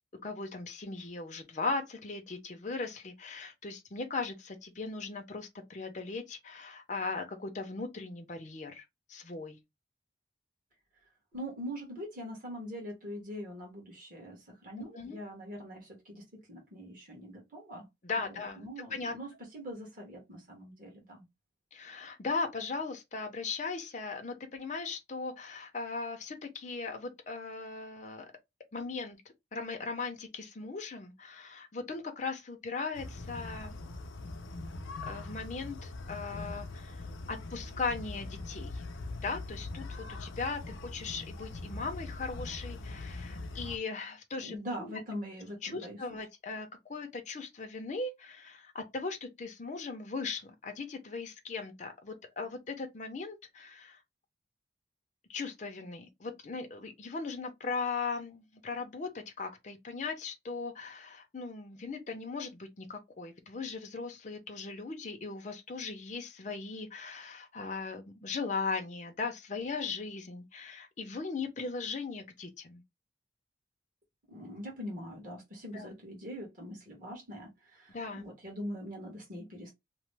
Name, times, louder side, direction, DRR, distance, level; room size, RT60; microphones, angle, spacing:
voice 1, 0.2-9.6 14.9-15.2 18.0-19.1 21.7-28.3 28.7-29.2 29.5-33.8 35.1-38.8 39.2-44.6 44.8-44.9 45.6-54.0 55.3-72.8 75.7-75.9 77.9-78.2, left 4 dB, 40° left, 0.5 m, -38 dB
voice 2, 11.3-17.9 18.2-21.3 44.4-46.0 74.3-79.7, equal, 45° right, 1.3 m, -43 dB
sound 1, 32.9-43.8, left 2 dB, 90° left, 0.6 m, -42 dB
3.0 x 2.0 x 3.2 m
head